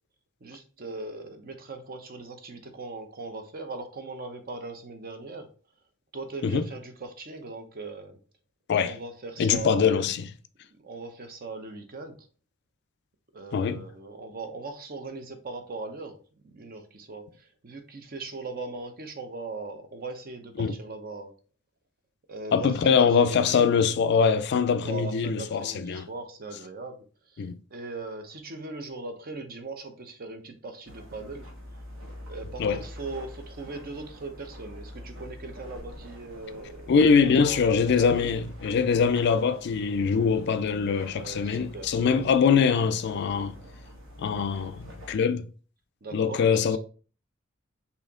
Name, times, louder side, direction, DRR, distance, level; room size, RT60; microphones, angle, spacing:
voice 1, 0.4-5.5 6.1-8.2 8.8-10.0 10.7-12.2 13.3-16.2 16.4-21.3 22.3-23.7 24.8-31.5 32.3-36.9 37.2-38.4 41.0-42.3 46.0-46.8, right 3 dB, 45° right, 0.7 m, -39 dB
voice 2, 9.4-10.2 13.5-13.8 20.6-20.7 22.5-26.1 27.4-27.5 32.6-32.8 36.9-43.5 44.2-45.4 46.1-46.8, left 6 dB, 55° left, 0.4 m, -23 dB
sound 1, 30.8-45.1, equal, 65° right, 1.2 m, -45 dB
4.2 x 2.8 x 3.5 m
head